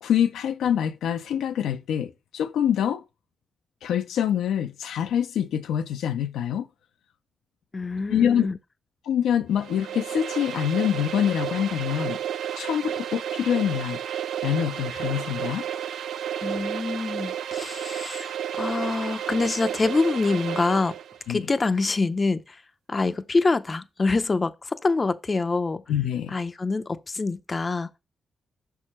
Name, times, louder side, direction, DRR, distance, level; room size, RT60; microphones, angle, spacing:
voice 1, 0.0-3.0 3.8-6.7 8.1-8.5 9.1-12.2 12.6-14.0 14.4-15.7 21.3-21.5 25.9-26.3, left 9 dB, 85° left, 0.5 m, -25 dB
voice 2, 7.7-8.6 16.4-21.0 21.3-22.6 22.9-25.8 26.3-28.0, left 3 dB, 40° left, 0.6 m, -25 dB
sound 1, 9.5-21.2, right 9 dB, 80° right, 0.4 m, -32 dB
5.9 x 4.6 x 4.3 m
supercardioid pair, 50°, 0 cm